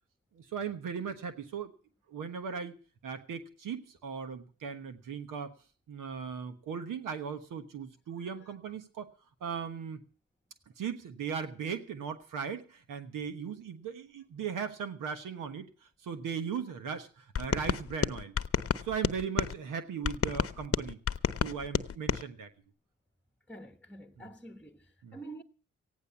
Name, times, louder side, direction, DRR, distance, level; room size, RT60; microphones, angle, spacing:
voice 1, 0.3-1.7 2.1-2.8 3.0-5.5 5.9-9.1 9.4-10.0 10.8-15.7 16.0-18.4 18.8-21.0 21.4-22.5 24.2-24.3 25.0-25.2, right 6 dB, 85° right, 1.3 m, -38 dB
sound 1, 17.4-19.5 20.0-22.2, left 7 dB, 45° left, 0.8 m, -31 dB
voice 2, 23.5-25.4, right 2 dB, 5° left, 1.1 m, -47 dB
15.5 x 9.8 x 7.0 m
supercardioid pair, 50°, 31 cm